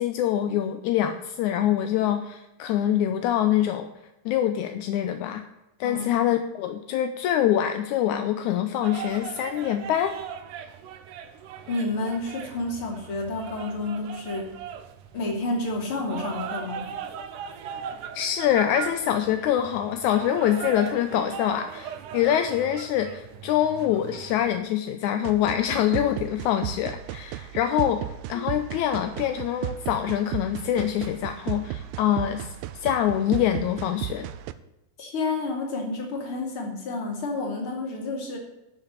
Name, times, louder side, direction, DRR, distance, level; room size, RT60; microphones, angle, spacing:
voice 1, 0.0-3.9 4.3-5.4 5.8-10.1 18.1-28.0 28.3-34.3, left 11 dB, 75° left, 8 dB, 1.9 m, -25 dB
voice 2, 5.8-6.1 11.7-14.5 15.1-16.9 28.3-28.4 35.0-38.4, left 2 dB, 40° left, 1 dB, 3.3 m, -30 dB
sound 1, 8.8-24.6, right 8 dB, 70° right, 2.3 m, -39 dB
sound 2, 25.2-34.5, right 13 dB, 85° right, 2.4 m, -35 dB
12.5 x 6.6 x 8.4 m, 0.96 s
omnidirectional pair, 4.0 m